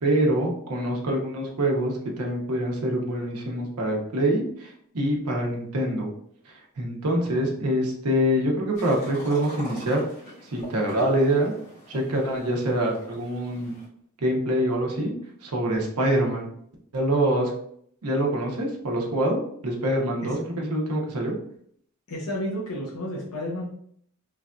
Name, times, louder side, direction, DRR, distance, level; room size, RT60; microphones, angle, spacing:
voice 1, 0.0-6.1 6.5-10.0 10.4-11.5 11.9-13.8 14.2-15.1 15.4-16.5 16.9-17.5 18.0-21.3, right 1 dB, 80° right, 0 dB, 0.7 m, -25 dB
sound 1, 8.7-13.8, equal, 35° left, 1.2 m, -42 dB
voice 2, 22.1-23.7, equal, 70° left, -3 dB, 0.6 m, -32 dB
3.3 x 2.5 x 2.2 m, 0.66 s
head